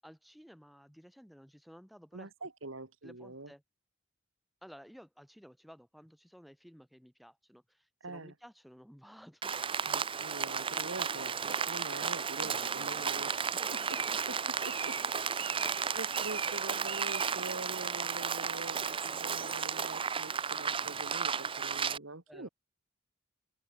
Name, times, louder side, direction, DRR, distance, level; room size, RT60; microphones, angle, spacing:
voice 1, 0.0-2.5 3.0-3.6 4.6-9.5 12.4-13.3 13.6-14.2 15.4-15.9 22.3-22.5, equal, ahead, 3.0 m, -55 dB
voice 2, 2.1-3.5 8.0-8.3 9.8-15.6 15.9-22.5, right 2 dB, 75° right, 2.4 m, -45 dB
Rain, 9.4-22.0, right 6 dB, 25° right, 0.8 m, -34 dB
open air
head